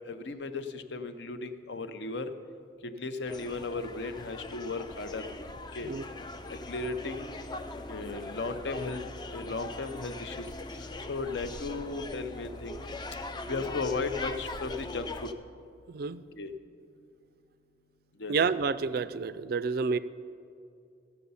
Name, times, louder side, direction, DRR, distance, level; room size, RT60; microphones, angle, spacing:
voice 1, 0.0-2.3 2.8-5.2 5.7-5.9 6.7-7.3 7.8-9.0 9.3-10.5 11.1-13.0 13.5-15.3 16.4-16.5 18.2-18.4, left 3 dB, 65° left, 9 dB, 0.6 m, -35 dB
sound 1, 3.2-15.3, left 2 dB, 20° left, 0.4 m, -41 dB
voice 2, 15.9-16.2 18.3-20.0, right 5 dB, 55° right, 16 dB, 0.3 m, -29 dB
15.5 x 6.8 x 5.5 m, 2.5 s
head